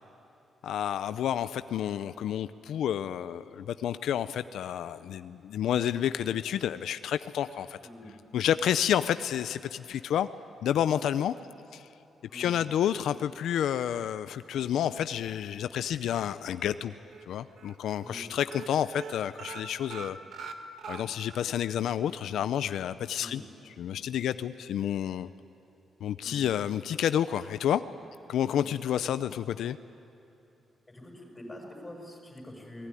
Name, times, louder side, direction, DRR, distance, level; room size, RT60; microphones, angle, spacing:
voice 1, 0.6-7.8 8.3-10.3 10.6-11.3 11.7-11.9 12.3-16.9 17.3-20.2 20.9-23.4 23.8-25.3 26.0-27.8 28.3-29.8, left 10 dB, 80° left, 12 dB, 0.6 m, -30 dB
voice 2, 7.8-8.1 12.3-12.6 18.0-18.4 23.1-23.4 26.2-26.5 28.6-28.7 30.9-32.9, left 1 dB, 10° left, 1 dB, 6.9 m, -46 dB
sound 1, 16.6-17.2 17.6-17.8 18.0-18.2 18.5-21.5 21.8-21.9 22.3-22.4, right 5 dB, 65° right, 1.8 m, -43 dB
28.0 x 20.0 x 10.0 m, 3.0 s
cardioid pair, 135°, 0 cm